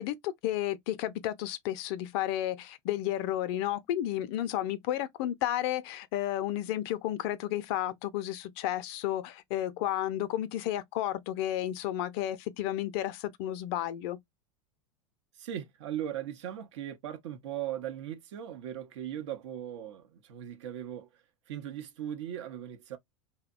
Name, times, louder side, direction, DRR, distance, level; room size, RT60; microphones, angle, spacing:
voice 1, 0.0-14.2, left 13 dB, 50° left, 0.4 m, -32 dB
voice 2, 15.4-21.1 21.5-23.0, right 10 dB, 60° right, 0.6 m, -38 dB
2.7 x 2.1 x 2.4 m
figure-of-eight pair, 85°, 17 cm